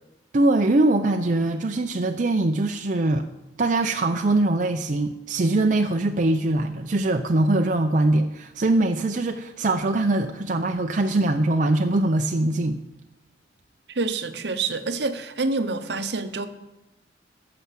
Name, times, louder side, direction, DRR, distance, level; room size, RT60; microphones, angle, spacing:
voice 1, 0.3-3.3 3.6-12.8, right 2 dB, 45° right, 0.5 m, -22 dB
voice 2, 13.9-16.5, right 3 dB, 65° right, 0.8 m, -27 dB
14.0 x 5.8 x 7.5 m
head